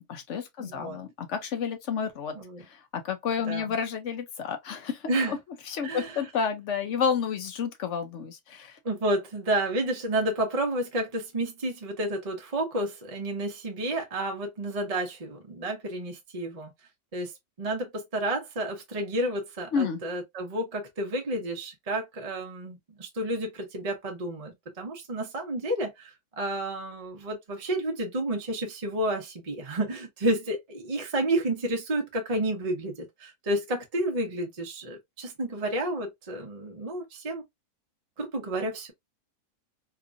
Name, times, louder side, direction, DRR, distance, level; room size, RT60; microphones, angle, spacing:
voice 1, 0.0-5.4 5.7-8.8 19.7-20.0, left 6 dB, 65° left, 0.7 m, -31 dB
voice 2, 0.6-1.0 2.3-2.6 3.5-3.7 5.1-5.4 5.8-6.2 8.8-16.7 17.1-17.3 17.6-37.4 38.2-38.9, right 1 dB, 35° right, 0.7 m, -30 dB
2.9 x 2.5 x 2.5 m
omnidirectional pair, 1.7 m